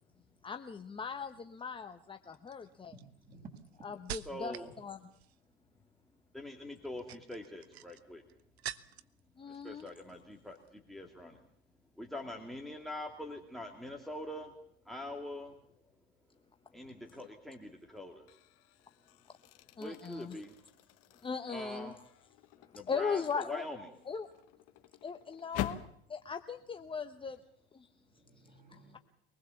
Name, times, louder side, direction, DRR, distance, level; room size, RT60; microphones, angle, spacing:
voice 1, 0.4-2.9 3.8-5.0 9.4-9.9 19.3-19.4 19.8-20.4 21.1-21.9 22.7-23.6 24.1-24.3 25.0-27.4 27.7-27.9 28.7-29.0, left 5 dB, 15° left, 7 dB, 1.1 m, -39 dB
sound 1, 1.3-1.6 2.3-4.7 5.0-5.5 6.8-9.2 9.5-10.2 10.5-10.7, right 12 dB, 80° right, 1.0 m, -47 dB
voice 2, 2.9-3.9 28.0-29.0, right 3 dB, 25° right, 2 dB, 7.4 m, -54 dB
voice 3, 4.3-4.7 6.3-8.2 9.6-11.4 12.0-14.5 14.9-15.5 16.7-18.2 19.8-20.5 21.5-22.0 22.7-23.8, left 1 dB, ahead, 3 dB, 2.5 m, -44 dB
sound 2, 17.1-17.4 18.0-26.0, left 13 dB, 50° left, 1.6 m, -46 dB
24.0 x 19.5 x 7.2 m, 0.66 s
hypercardioid pair, 95°, 31 cm